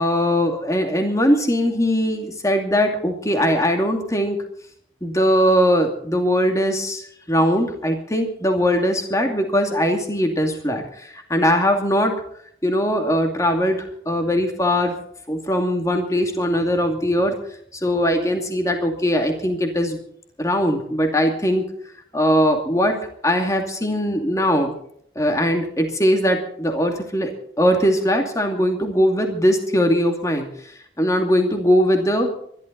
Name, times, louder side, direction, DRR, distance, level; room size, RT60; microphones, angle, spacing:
voice 1, 0.0-4.4 5.0-12.2 12.6-15.0 15.3-17.3 17.7-20.0 20.4-21.6 22.1-23.0 23.2-24.7 25.2-27.3 27.6-30.5 31.0-32.3, equal, 20° left, 4 dB, 2.4 m, -20 dB
23.0 x 12.5 x 4.0 m, 0.66 s
head